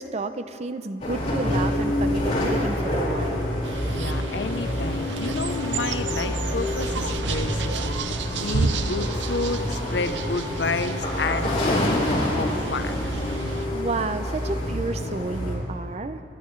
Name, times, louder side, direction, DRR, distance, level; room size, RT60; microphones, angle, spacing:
voice 1, 0.0-3.5 13.7-16.2, right 3 dB, 40° right, 10 dB, 0.5 m, -31 dB
sound 1, 1.0-15.6, left 1 dB, 40° left, 3.5 m, -27 dB
sound 2, 3.6-13.7, right 4 dB, 90° right, 0.6 m, -33 dB
voice 2, 3.9-13.1, left 3 dB, 80° left, 10 dB, 0.7 m, -30 dB
sound 3, 5.5-11.0, left 1 dB, 5° right, 1.7 m, -44 dB
27.0 x 11.5 x 3.2 m, 2.9 s
head